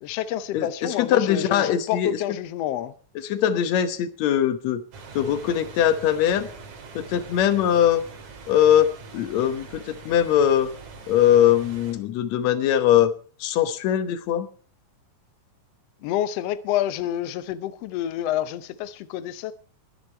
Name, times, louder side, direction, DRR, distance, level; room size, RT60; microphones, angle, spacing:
voice 1, 0.0-2.9 16.0-19.5, left 12 dB, 90° left, 1.4 m, -28 dB
voice 2, 0.5-2.2 3.2-4.8 5.1-6.5 7.0-8.1 8.5-10.7 11.1-13.1 13.4-14.5, left 10 dB, 65° left, 2.0 m, -21 dB
sound 1, 4.9-11.9, right 4 dB, 60° right, 3.6 m, -43 dB
21.5 x 8.3 x 4.4 m
omnidirectional pair, 3.9 m